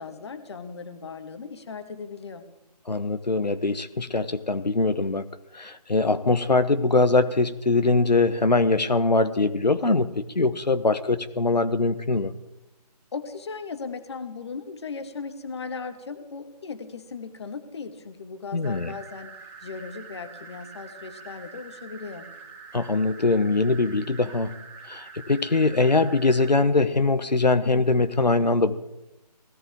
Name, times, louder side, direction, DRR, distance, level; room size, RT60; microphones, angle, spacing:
voice 1, 0.0-2.5 13.1-19.4 19.6-22.3, left 5 dB, 40° left, 9 dB, 1.5 m, -37 dB
voice 2, 2.9-5.3 5.5-12.3 18.5-18.9 22.7-24.5 24.9-28.8, left 3 dB, 85° left, 10 dB, 1.1 m, -22 dB
sound 1, 18.6-26.5, right 5 dB, 10° right, 1.5 m, -45 dB
20.5 x 15.0 x 3.6 m, 0.93 s
figure-of-eight pair, 155°, 21 cm